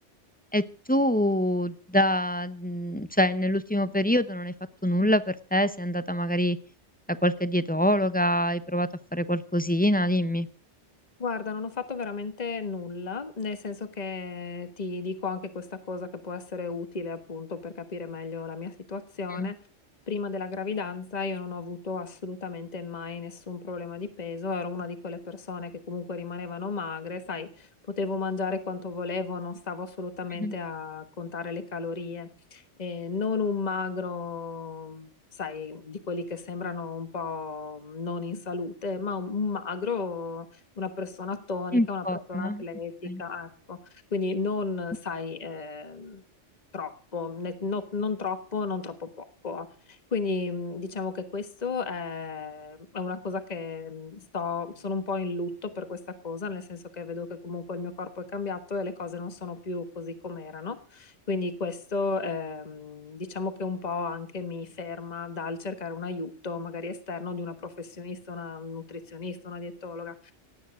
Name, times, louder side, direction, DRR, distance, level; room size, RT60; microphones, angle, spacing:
voice 1, 0.9-4.5 4.8-6.6 7.1-10.5 19.3-19.5 30.4-30.5 41.7-42.6 43.0-43.2, equal, 10° left, 13 dB, 0.6 m, -25 dB
voice 2, 11.2-19.5 20.1-27.7 28.0-35.1 35.4-40.5 40.8-42.9 43.2-46.2 46.7-56.0 56.2-70.3, left 4 dB, 35° left, 10 dB, 1.5 m, -34 dB
17.5 x 9.3 x 6.3 m, 0.43 s
omnidirectional pair, 1.2 m